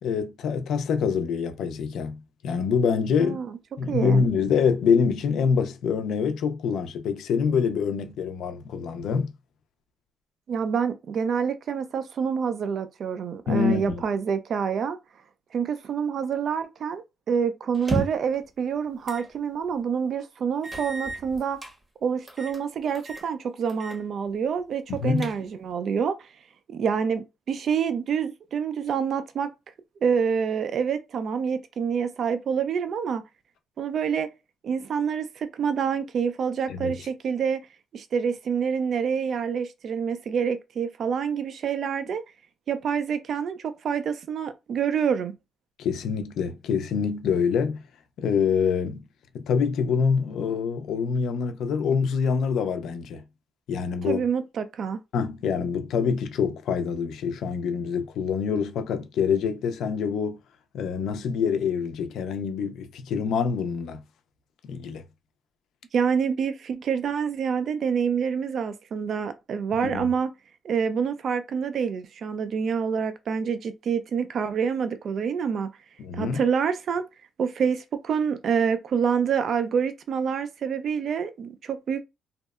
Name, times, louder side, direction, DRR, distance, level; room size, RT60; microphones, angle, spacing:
voice 1, 0.0-3.4 3.8-9.3 13.5-14.0 24.9-25.3 36.7-37.0 45.8-47.8 48.2-49.0 49.3-53.2 53.7-54.2 55.1-60.4 60.7-64.0 64.6-65.0 69.8-70.1 76.0-76.4, left 6 dB, 75° left, 0.4 m, -25 dB
voice 2, 3.2-3.6 3.9-4.2 10.5-15.0 15.5-21.6 22.0-26.3 26.7-29.5 30.0-33.2 33.8-34.3 34.6-37.6 37.9-42.2 42.7-45.4 54.1-55.0 65.9-70.3 70.6-75.7 76.1-77.1 77.4-82.0, right 7 dB, 60° right, 0.3 m, -27 dB
sound 1, 17.7-18.4 19.1-19.3 19.7-19.8 20.6-21.7 22.3-22.6 22.9-23.3 23.7-24.0 24.3-24.4 24.9-25.7, right 2 dB, 20° right, 0.7 m, -33 dB
2.7 x 2.0 x 2.3 m
cardioid pair, 90°, 0 cm